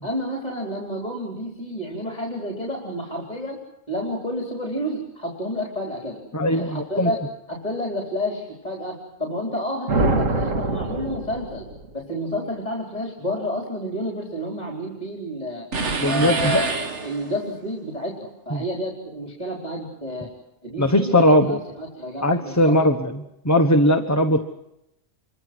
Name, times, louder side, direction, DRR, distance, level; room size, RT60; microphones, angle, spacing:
voice 1, 0.0-3.6 3.9-6.2 6.5-7.2 7.5-11.6 11.9-15.7 16.1-20.3 20.6-22.8, equal, 30° left, -1 dB, 4.2 m, -30 dB
voice 2, 6.3-7.1 16.0-16.6 18.5-18.6 20.8-21.6 22.2-23.1 23.4-24.5, equal, 15° left, 5 dB, 1.1 m, -19 dB
sound 1, 9.9-11.9, right 2 dB, 85° right, 2.2 m, -24 dB
sound 2, 15.7-17.5, right 4 dB, 65° right, 1.7 m, -27 dB
27.5 x 24.5 x 6.2 m, 0.84 s
omnidirectional pair, 1.3 m